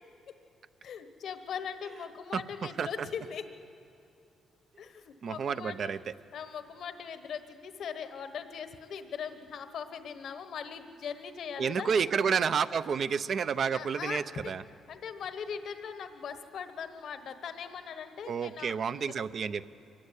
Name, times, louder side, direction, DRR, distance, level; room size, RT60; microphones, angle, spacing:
voice 1, 0.8-3.5 4.8-5.9 6.3-11.9 13.7-14.5 14.9-19.2, left 7 dB, 65° left, 9 dB, 1.2 m, -40 dB
voice 2, 5.2-6.1 11.6-14.6 18.3-19.6, right 6 dB, 55° right, 13 dB, 0.7 m, -30 dB
24.5 x 15.0 x 9.9 m, 2.6 s
cardioid pair, 90°, 0 cm